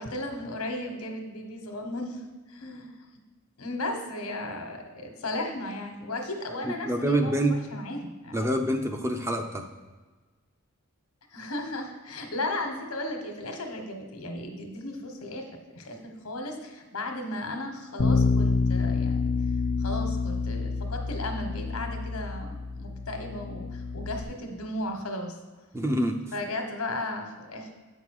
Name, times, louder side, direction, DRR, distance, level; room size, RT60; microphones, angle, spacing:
voice 1, 0.0-2.9 3.6-8.4 11.3-15.5 15.7-19.3 19.8-25.4 26.3-27.7, left 1 dB, 80° left, 4 dB, 1.3 m, -35 dB
voice 2, 6.6-7.5 8.3-9.6 25.7-26.2, right 1 dB, 10° right, 3 dB, 0.5 m, -26 dB
Bass guitar, 18.0-24.2, left 4 dB, 40° left, 0.4 m, -28 dB
8.2 x 5.5 x 4.7 m, 1.3 s
head